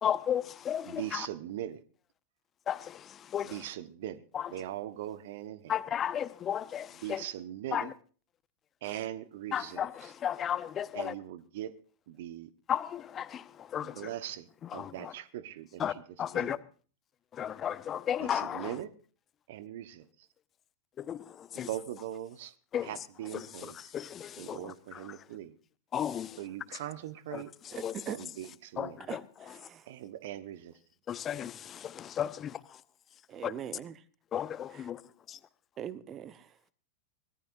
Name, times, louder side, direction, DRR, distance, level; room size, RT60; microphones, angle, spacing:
voice 1, 0.0-1.3 2.7-3.7 4.3-4.5 5.7-7.2 7.7-7.9 9.5-11.1 12.7-14.1 14.6-15.1 15.8-16.6 17.3-18.8 21.0-21.7 22.7-23.0 23.3-25.3 25.9-26.5 26.7-26.8 27.3-27.9 28.8-29.2 29.5-29.6 31.1-32.5 33.4-33.5 34.3-35.0, left 9 dB, 25° left, 0.9 m, -34 dB
voice 2, 0.9-1.8 3.5-4.2 4.5-5.7 7.0-7.9 8.8-9.8 10.9-11.8 12.1-12.5 14.0-15.8 16.3-16.5 18.2-18.9 19.5-20.1 21.5-22.5 22.9-23.7 24.4-25.5 26.4-27.5 28.1-28.9 29.9-30.8, right 12 dB, 55° right, 1.1 m, -40 dB
voice 3, 27.7-28.2 29.1-29.9 33.3-34.0 34.7-34.8 35.8-36.6, right 9 dB, 30° right, 1.1 m, -42 dB
24.5 x 18.0 x 2.6 m
figure-of-eight pair, 90°, 0 cm